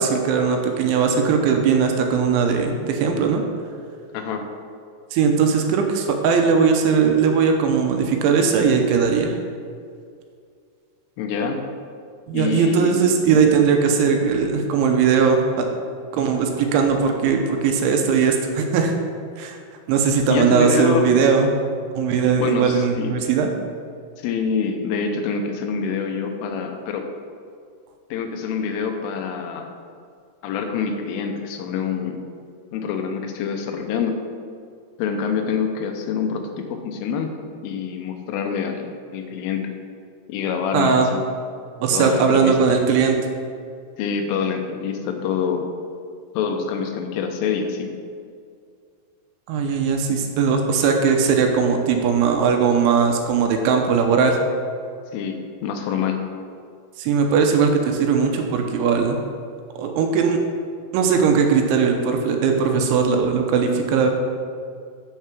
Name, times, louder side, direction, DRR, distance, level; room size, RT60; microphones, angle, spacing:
voice 1, 0.0-3.4 5.1-9.4 12.3-15.7 16.1-18.9 19.4-19.6 19.9-21.5 22.0-23.5 40.7-41.1 41.8-43.2 49.5-54.4 57.0-59.2 59.8-60.4 60.9-64.1, right 6 dB, 80° right, 3 dB, 3.1 m, -19 dB
voice 2, 4.1-4.5 11.2-11.6 12.3-13.1 20.2-21.1 22.3-23.1 24.2-27.0 28.1-29.7 30.4-32.2 32.7-34.2 35.0-37.3 37.6-39.7 40.3-41.2 41.9-42.6 44.0-45.7 46.3-47.9 55.1-56.3, left 6 dB, 85° left, 4 dB, 3.4 m, -26 dB
11.5 x 5.7 x 6.0 m, 2.2 s
omnidirectional pair, 5.6 m